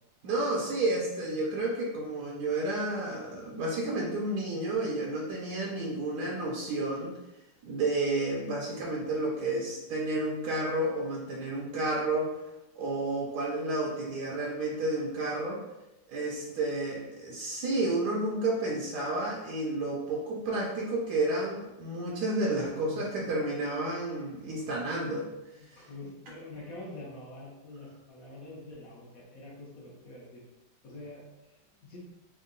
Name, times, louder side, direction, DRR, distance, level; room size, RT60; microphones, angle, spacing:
voice 1, 0.2-7.1 7.6-12.4 12.7-15.6 16.1-25.3 25.7-25.8, right 2 dB, 70° right, -3 dB, 1.2 m, -31 dB
voice 2, 22.9-23.4 24.7-24.8 25.0-25.2 25.6-30.4 30.8-32.0, left 2 dB, 60° left, -3 dB, 1.2 m, -46 dB
3.6 x 2.2 x 3.7 m, 0.96 s
omnidirectional pair, 1.9 m